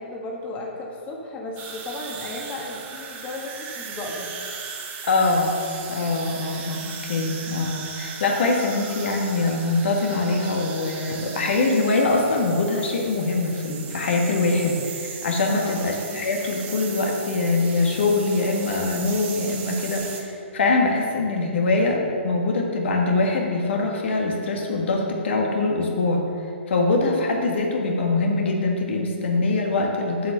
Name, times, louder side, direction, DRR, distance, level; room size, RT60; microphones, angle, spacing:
voice 1, 0.0-4.3 8.6-8.8 15.5-15.8, left 2 dB, 20° left, -2 dB, 1.5 m, -35 dB
sound 1, 1.6-20.2, right 6 dB, 25° right, 1.3 m, -37 dB
voice 2, 5.1-5.6 5.9-26.2 26.7-30.3, left 3 dB, 65° left, 0 dB, 1.7 m, -23 dB
7.5 x 5.8 x 6.8 m, 2.6 s
hypercardioid pair, 140°, 7 cm